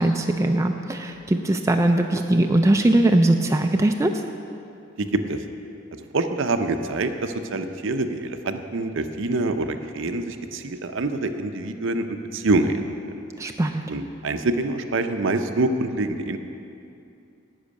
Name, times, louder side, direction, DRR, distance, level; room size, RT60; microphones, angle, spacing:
voice 1, 0.0-4.1 13.4-13.8, right 1 dB, 15° right, 4 dB, 0.3 m, -20 dB
voice 2, 5.0-5.4 6.1-13.0 13.9-16.4, right 2 dB, 60° right, 8 dB, 0.6 m, -25 dB
10.5 x 5.7 x 8.4 m, 2.6 s
head